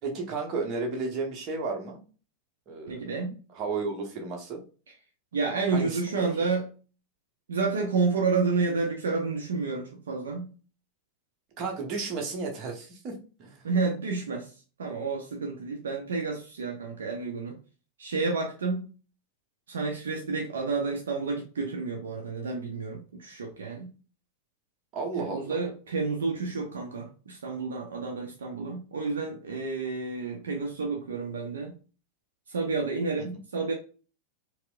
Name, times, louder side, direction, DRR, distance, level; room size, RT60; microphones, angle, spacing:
voice 1, 0.0-2.0 2.7-3.0 3.5-4.6 5.7-6.3 11.6-13.6 24.9-25.6 33.2-33.3, right 4 dB, 35° right, 1.0 m, -33 dB
voice 2, 2.9-3.4 5.3-6.7 7.5-10.5 13.6-14.5 14.8-17.6 18.0-18.9 19.7-23.9 25.2-31.7 32.5-33.7, right 4 dB, 65° right, 0.6 m, -30 dB
4.4 x 2.1 x 2.4 m
figure-of-eight pair, 90°, 0 cm